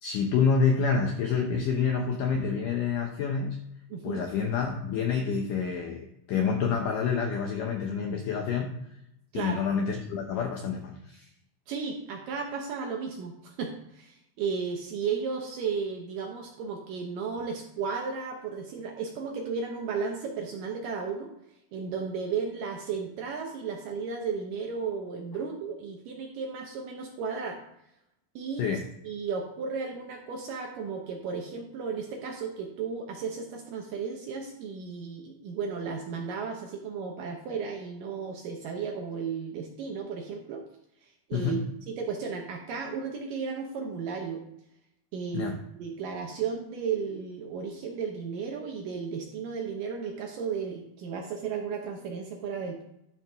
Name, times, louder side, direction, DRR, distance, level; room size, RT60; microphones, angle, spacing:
voice 1, 0.0-3.6 4.0-8.7 9.3-11.3 28.6-28.8 41.3-41.6 45.3-45.6, left 6 dB, 80° left, 3 dB, 1.9 m, -28 dB
voice 2, 3.9-4.3 9.3-9.6 11.7-21.3 21.7-27.6 28.4-28.7 29.0-40.6 41.0-41.6 41.9-44.4 45.1-52.8, right 5 dB, 75° right, 1 dB, 2.1 m, -34 dB
12.5 x 5.8 x 3.5 m, 0.81 s
omnidirectional pair, 4.8 m